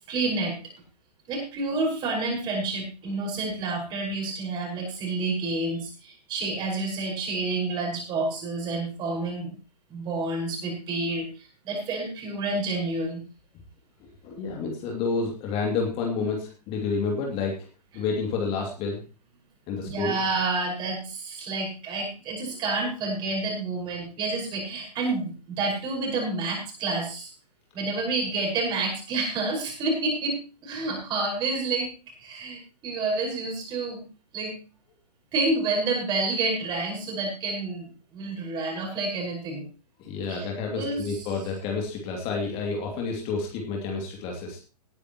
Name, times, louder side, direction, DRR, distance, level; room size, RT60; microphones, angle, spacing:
voice 1, 0.1-0.6 1.3-9.5 9.9-13.2 19.8-27.3 27.7-31.9 32.2-34.1 34.3-34.6 35.3-39.7 40.3-40.5 40.7-41.3, right 3 dB, 20° right, 0 dB, 5.6 m, -29 dB
voice 2, 14.2-17.6 17.9-19.0 19.7-20.2 40.0-44.6, left 4 dB, 25° left, 1 dB, 2.8 m, -29 dB
18.5 x 10.5 x 3.1 m, 0.34 s
figure-of-eight pair, 115°, 21 cm